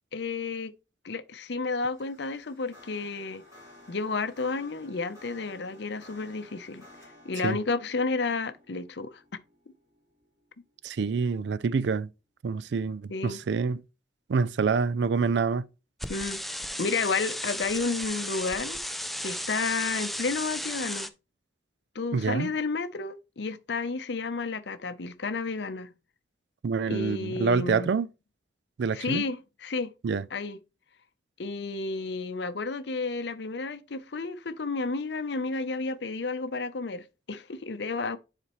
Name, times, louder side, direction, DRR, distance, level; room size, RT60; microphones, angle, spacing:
voice 1, 0.1-0.7 1.0-3.4 3.9-6.9 7.2-9.2 13.1-13.4 16.1-16.4 16.8-18.8 19.2-21.1 21.9-25.9 26.9-27.9 28.9-29.9 30.3-30.6 31.4-38.2, left 4 dB, 70° left, 0.7 m, -31 dB
sound 1, 1.8-11.2, left 1 dB, 15° right, 3.1 m, -54 dB
voice 2, 10.8-12.1 12.4-13.8 14.3-15.7 22.1-22.5 26.6-28.1 28.8-29.2 30.0-30.3, right 5 dB, 70° right, 0.4 m, -27 dB
sound 2, 16.0-21.1, left 1 dB, ahead, 0.4 m, -35 dB
9.8 x 4.2 x 3.0 m
head